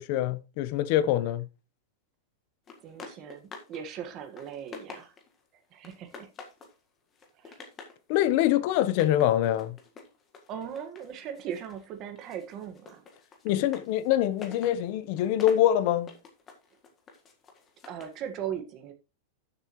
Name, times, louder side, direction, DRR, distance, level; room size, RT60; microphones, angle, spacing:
voice 1, 0.0-1.5 8.1-9.8 13.4-16.1, left 12 dB, 45° left, 0.9 m, -24 dB
sound 1, 2.7-3.8 4.2-5.4 5.8-6.8 7.1-8.0 8.8-11.8 12.2-18.2, left 4 dB, 20° left, 1.6 m, -48 dB
voice 2, 2.8-5.1 5.7-6.3 7.4-7.6 10.5-13.0 17.9-18.9, right 9 dB, 30° right, 1.6 m, -39 dB
13.0 x 7.2 x 3.1 m
supercardioid pair, 170°, 0 cm